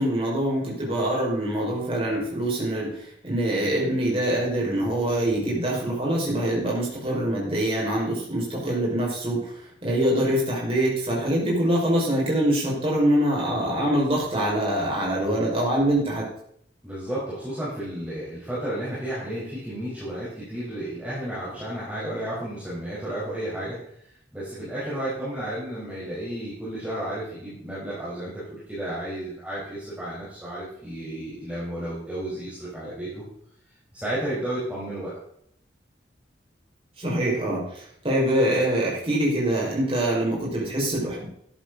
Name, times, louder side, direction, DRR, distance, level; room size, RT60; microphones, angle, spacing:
voice 1, 0.0-16.2 37.0-41.3, right 1 dB, 30° right, -4 dB, 5.3 m, -24 dB
voice 2, 16.8-23.8 24.3-33.2 33.9-35.1, right 1 dB, 10° right, -10 dB, 4.7 m, -32 dB
13.5 x 11.0 x 4.0 m, 0.69 s
head